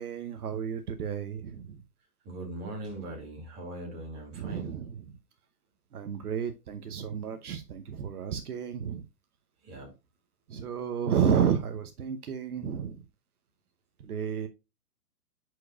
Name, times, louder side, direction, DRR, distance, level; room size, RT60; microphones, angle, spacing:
voice 1, 0.0-1.8 4.3-5.2 5.9-9.1 10.5-13.0 14.0-14.5, right 7 dB, 70° right, 0.9 m, -31 dB
voice 2, 2.2-4.7 9.6-9.9, right 1 dB, 25° right, 2.2 m, -40 dB
9.4 x 4.7 x 2.3 m
hypercardioid pair, 160°, 47 cm